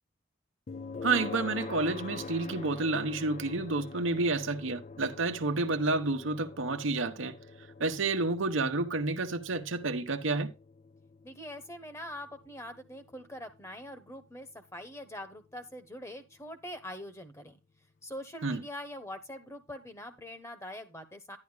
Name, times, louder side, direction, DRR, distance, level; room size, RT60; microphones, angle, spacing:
sound 1, 0.7-15.6, left 4 dB, 35° left, 0.4 m, -45 dB
voice 1, 1.0-7.4 7.8-10.5 18.4-18.6, right 3 dB, 80° right, 1.1 m, -30 dB
voice 2, 11.2-17.6 18.0-21.4, left 1 dB, 15° left, 1.1 m, -43 dB
10.5 x 10.5 x 2.2 m
head